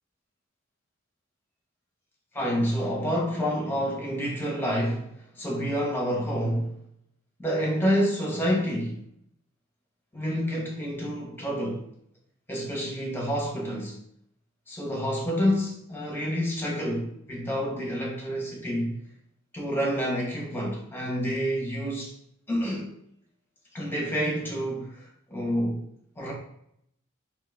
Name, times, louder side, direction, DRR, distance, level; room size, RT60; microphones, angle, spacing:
voice 1, 2.3-5.1 5.3-6.7 7.4-9.0 10.1-11.8 12.5-13.9 14.7-19.0 19.5-22.1 22.5-22.9 23.7-25.8 26.2-26.3, equal, 10° left, -2 dB, 1.0 m, -28 dB
3.7 x 3.0 x 3.4 m, 0.72 s
head